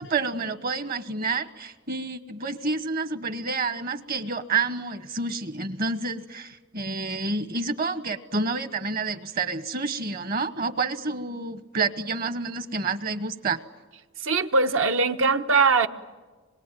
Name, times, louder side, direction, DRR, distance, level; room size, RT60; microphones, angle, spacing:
voice 1, 0.0-13.6, right 3 dB, 50° right, 12 dB, 1.2 m, -29 dB
voice 2, 14.2-15.9, right 4 dB, 80° right, 7 dB, 1.3 m, -21 dB
26.0 x 22.0 x 9.2 m, 1.3 s
head